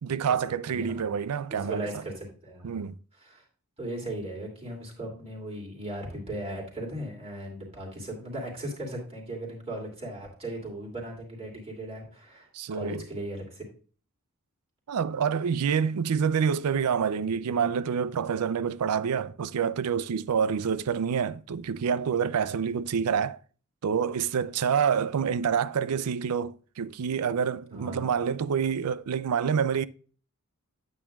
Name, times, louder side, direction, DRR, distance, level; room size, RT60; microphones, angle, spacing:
voice 1, 0.0-1.9 2.6-3.0 12.5-13.1 14.9-23.4 23.8-29.9, right 7 dB, 85° right, 0.4 m, -27 dB
voice 2, 0.7-1.0 1.5-2.9 3.2-3.4 3.8-13.6 27.7-28.1, right 1 dB, 30° right, 2.8 m, -37 dB
9.0 x 8.4 x 2.4 m
head